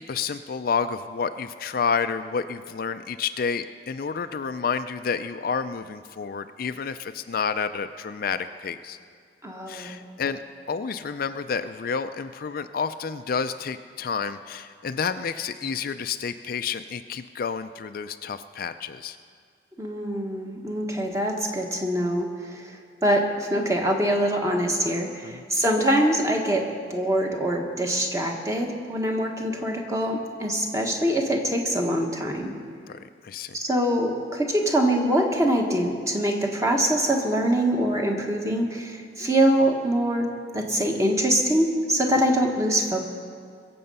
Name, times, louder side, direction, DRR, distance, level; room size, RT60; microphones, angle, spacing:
voice 1, 0.0-9.0 9.7-10.4 10.7-19.2 25.2-25.4 32.9-33.6, left 6 dB, 50° left, 10 dB, 0.4 m, -30 dB
voice 2, 9.4-10.0 19.8-26.6 26.9-32.5 33.5-40.3 40.5-43.0, right 1 dB, 15° right, 2 dB, 1.3 m, -24 dB
22.5 x 7.7 x 5.5 m, 2.1 s
head